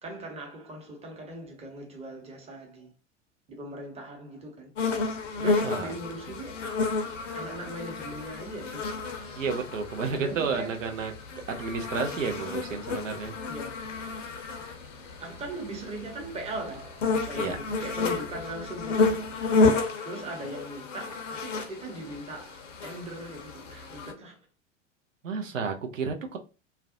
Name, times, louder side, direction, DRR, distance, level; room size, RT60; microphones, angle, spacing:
voice 1, 0.0-2.9 3.5-4.7 5.3-6.7 7.3-8.9 10.1-10.8 13.5-13.9 15.2-19.3 20.0-24.4, right 1 dB, 15° right, 0.8 m, -39 dB
sound 1, 4.8-24.1, left 3 dB, 75° left, 0.6 m, -31 dB
voice 2, 5.6-5.9 9.4-11.1 11.6-13.3 17.4-17.6 25.2-26.4, right 5 dB, 85° right, 0.5 m, -31 dB
2.4 x 2.0 x 2.5 m
figure-of-eight pair, 80°, 37 cm